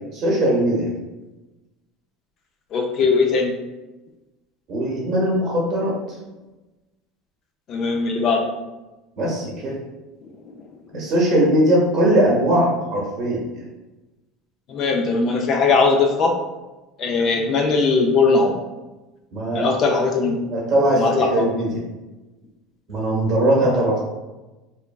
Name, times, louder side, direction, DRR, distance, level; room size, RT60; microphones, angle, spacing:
voice 1, 0.1-0.9 4.7-6.0 9.2-9.8 10.9-13.5 19.3-19.7 20.5-21.7 22.9-24.0, right 1 dB, 35° right, -3 dB, 0.9 m, -20 dB
voice 2, 2.7-3.5 7.7-8.5 10.2-10.6 14.7-16.3 17.0-18.6 19.5-20.4 20.9-21.4, left 4 dB, 40° left, 2 dB, 0.3 m, -19 dB
3.2 x 2.2 x 2.3 m, 1.1 s
cardioid pair, 155°, 0 cm